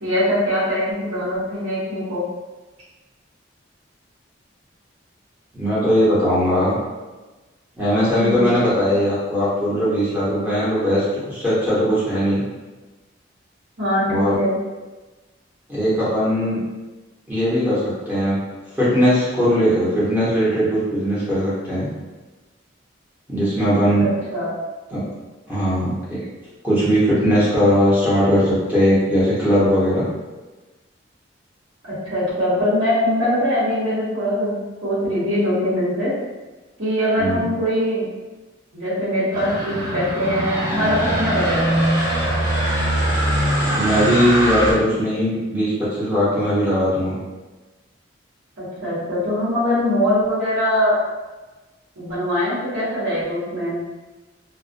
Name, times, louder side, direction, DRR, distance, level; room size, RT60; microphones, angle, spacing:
voice 1, 0.0-2.2 8.2-8.6 13.8-14.6 24.0-24.5 31.9-34.5 34.8-36.1 36.8-38.1 38.7-41.8 48.6-51.0 52.0-53.8, equal, 70° right, -9 dB, 1.0 m, -22 dB
voice 2, 5.5-6.8 7.8-12.4 14.1-14.4 15.7-16.6 17.3-18.4 18.7-21.9 23.3-24.0 24.9-25.1 25.5-26.2 26.6-30.0 37.2-37.4 43.7-47.2, equal, 10° right, -10 dB, 0.8 m, -19 dB
sound 1, 39.3-44.7, right 1 dB, 45° right, 0.7 m, -21 dB
2.3 x 2.1 x 2.5 m, 1.2 s
head